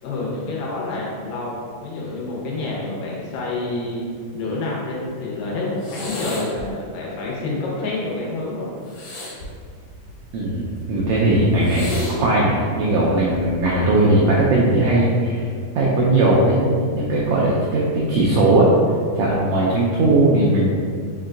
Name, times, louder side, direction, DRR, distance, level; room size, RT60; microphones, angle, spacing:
voice 1, 0.0-4.0 4.3-9.0 19.5-19.7, left 2 dB, 85° left, -4 dB, 2.6 m, -28 dB
sound 1, 5.8-6.7 8.9-10.4 11.6-12.2 13.3-13.6, left 2 dB, 70° left, 2.8 m, -32 dB
voice 2, 10.3-15.4 15.7-18.7 19.2-20.7, right 2 dB, 85° right, -5 dB, 1.5 m, -18 dB
5.6 x 2.2 x 3.7 m, 2.1 s
omnidirectional pair, 3.7 m